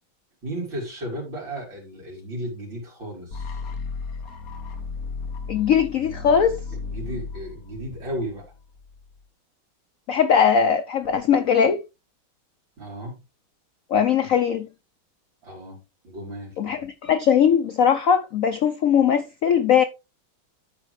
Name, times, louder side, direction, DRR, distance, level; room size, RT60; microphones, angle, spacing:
voice 1, 0.4-3.6 6.7-8.5 12.8-13.2 15.4-16.5, right 1 dB, 65° right, 4.9 m, -34 dB
sound 1, 3.3-9.2, left 4 dB, 50° left, 1.3 m, -35 dB
voice 2, 5.5-6.6 10.1-11.8 13.9-14.7 16.6-19.8, left 7 dB, 80° left, 0.7 m, -20 dB
12.5 x 4.9 x 3.2 m
omnidirectional pair, 2.2 m